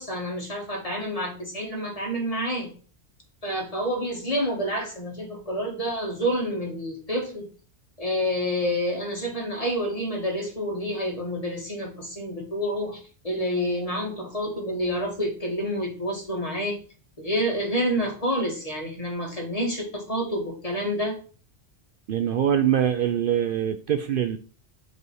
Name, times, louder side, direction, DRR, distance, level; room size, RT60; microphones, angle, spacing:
voice 1, 0.0-2.7 3.4-7.5 8.0-16.8 17.2-21.2, equal, 35° left, -1 dB, 1.7 m, -28 dB
voice 2, 22.1-24.4, right 9 dB, 60° right, 8 dB, 0.6 m, -23 dB
5.3 x 4.2 x 4.7 m, 0.39 s
omnidirectional pair, 1.1 m